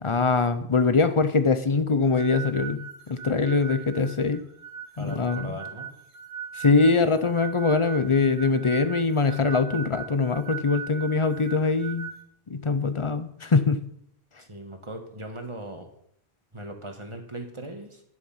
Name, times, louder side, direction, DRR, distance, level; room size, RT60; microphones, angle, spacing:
voice 1, 0.0-4.4 5.0-5.6 6.5-12.1 12.5-13.8, left 4 dB, 35° left, 11 dB, 0.6 m, -23 dB
sound 1, 2.2-12.2, right 7 dB, 45° right, 1.9 m, -40 dB
voice 2, 4.9-5.9 14.4-15.9 16.5-18.0, right 1 dB, 30° right, 4 dB, 1.5 m, -39 dB
10.5 x 7.3 x 5.6 m, 0.69 s
omnidirectional pair, 1.1 m